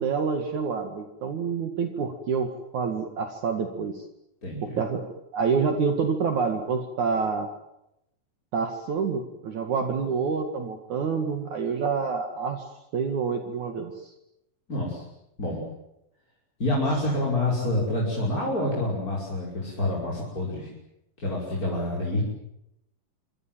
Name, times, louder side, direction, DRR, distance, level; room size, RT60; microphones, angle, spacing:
voice 1, 0.0-4.0 4.6-7.5 8.5-12.6 12.9-14.1, right 5 dB, 60° right, 6 dB, 3.2 m, -27 dB
voice 2, 4.4-4.8 14.7-15.1 15.4-15.6 16.6-20.7 21.2-22.2, left 1 dB, 25° left, -2 dB, 6.0 m, -27 dB
26.5 x 25.0 x 7.7 m, 0.83 s
omnidirectional pair, 4.2 m